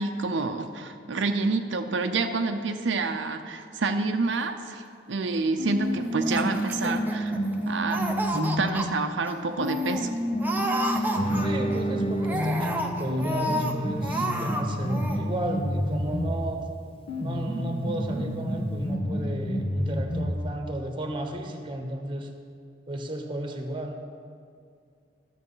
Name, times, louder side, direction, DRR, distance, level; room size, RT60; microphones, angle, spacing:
voice 1, 0.0-4.8 5.1-7.4 7.6-8.0 8.3-10.1, right 3 dB, 85° right, 6 dB, 0.6 m, -28 dB
sound 1, 5.6-8.9 9.6-16.5 17.1-20.5, equal, 60° left, 1.4 m, -29 dB
Laughter, 6.2-7.5 7.9-8.9 9.3-9.4 9.6-10.0 10.4-11.8 12.2-13.7 14.0-14.6 14.9-15.2, right 1 dB, 10° right, 0.7 m, -31 dB
Guitar, 11.1-16.2, equal, 30° left, 0.6 m, -35 dB
voice 2, 11.4-16.6 17.2-22.3 22.9-24.0, right 1 dB, 25° right, 4 dB, 1.0 m, -33 dB
12.0 x 7.2 x 5.6 m, 2.4 s
head